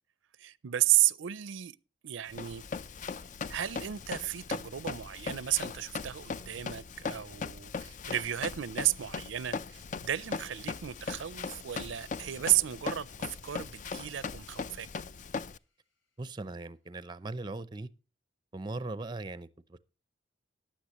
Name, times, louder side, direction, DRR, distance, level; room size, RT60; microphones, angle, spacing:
voice 1, 0.4-1.8 2.0-2.6 3.5-14.9, right 13 dB, 85° right, 0.5 m, -33 dB
Run, 2.3-15.6, left 5 dB, 40° left, 0.4 m, -39 dB
sound 1, 5.6-16.7, left 4 dB, 85° left, 3.2 m, -67 dB
voice 2, 16.2-17.9 18.5-19.8, right 2 dB, 25° right, 0.5 m, -39 dB
15.0 x 10.0 x 3.0 m
head